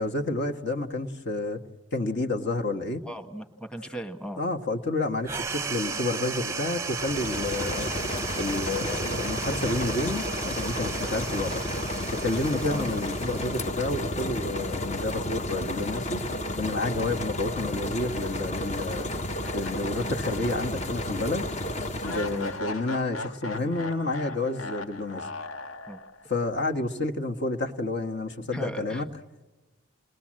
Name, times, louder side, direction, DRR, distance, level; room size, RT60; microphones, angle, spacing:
voice 1, 0.0-1.6 1.9-3.0 4.4-7.9 8.4-11.6 12.1-16.2 16.6-19.1 19.5-21.5 22.0-25.3 26.3-29.1, left 2 dB, 50° left, 3 dB, 1.5 m, -30 dB
voice 2, 3.0-4.4 11.2-11.3 12.7-12.9 17.3-17.4 22.0-22.5 25.9-26.0 28.5-29.0, right 1 dB, 5° left, 5 dB, 1.3 m, -37 dB
sound 1, 5.2-14.1, right 5 dB, 15° right, 0.8 m, -35 dB
sound 2, 6.8-22.6, left 1 dB, 30° left, 0.9 m, -32 dB
sound 3, 19.4-20.7 21.1-21.2 22.0-26.3, left 2 dB, 80° left, 1.5 m, -38 dB
29.5 x 21.0 x 7.6 m, 1.2 s
head